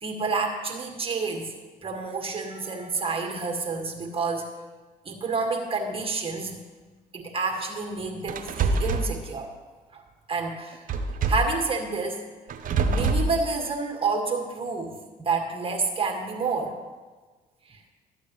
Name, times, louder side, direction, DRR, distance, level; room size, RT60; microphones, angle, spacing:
voice 1, 0.0-1.5 1.8-4.5 5.1-6.6 7.1-9.5 9.9-10.0 10.3-10.8 11.3-12.2 12.8-16.7 17.7-17.8, right 4 dB, 35° right, 2 dB, 1.9 m, -29 dB
sound 1, 8.3-9.1 10.9-11.6 12.5-13.3, right 3 dB, 55° right, 0.8 m, -24 dB
12.0 x 8.2 x 3.2 m, 1.3 s
supercardioid pair, 60°, 17 cm